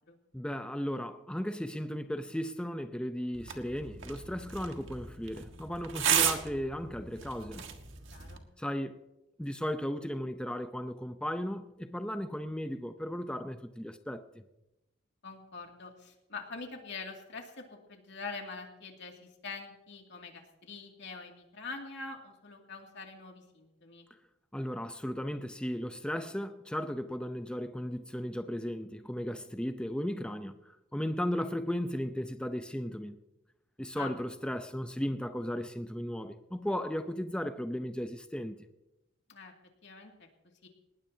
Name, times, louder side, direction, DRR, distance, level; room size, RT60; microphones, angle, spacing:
voice 1, 0.3-7.7 8.6-9.0 9.4-14.4 24.5-33.2 33.8-38.7, equal, 5° left, 0.6 m, -36 dB
sound 1, 3.3-8.4, right 8 dB, 65° right, 1.6 m, -34 dB
voice 2, 8.1-8.4 15.2-24.1 34.0-34.1 39.3-39.5 39.8-40.3 40.6-40.7, left 4 dB, 60° left, 2.5 m, -44 dB
19.5 x 19.5 x 2.8 m
head